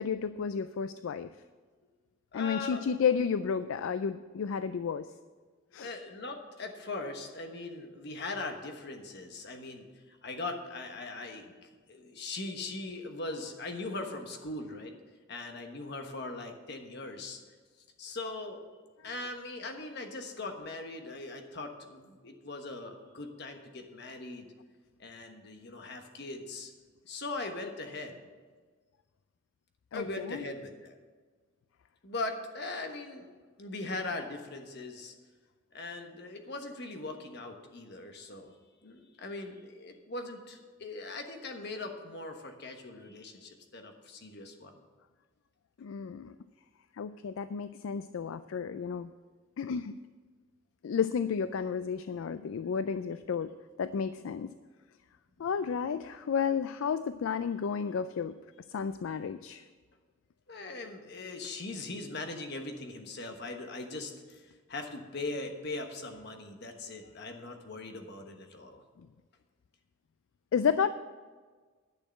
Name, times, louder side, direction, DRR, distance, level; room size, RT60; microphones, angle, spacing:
voice 1, 0.0-1.3 2.3-5.1 5.7-5.9 29.9-30.4 45.8-46.4 46.9-49.1 49.6-49.9 50.8-53.5 53.8-54.5 55.4-58.3 58.7-59.6 70.5-70.9, left 6 dB, 70° left, 13 dB, 0.3 m, -32 dB
voice 2, 2.3-2.8 5.7-11.5 11.9-14.9 15.3-17.4 18.0-18.6 19.0-24.5 25.0-26.7 27.1-28.2 29.9-31.0 32.0-33.3 33.6-35.1 35.7-38.5 38.8-44.7 60.5-68.8, left 2 dB, 50° left, 4 dB, 1.3 m, -40 dB
10.5 x 6.5 x 7.7 m, 1.4 s
head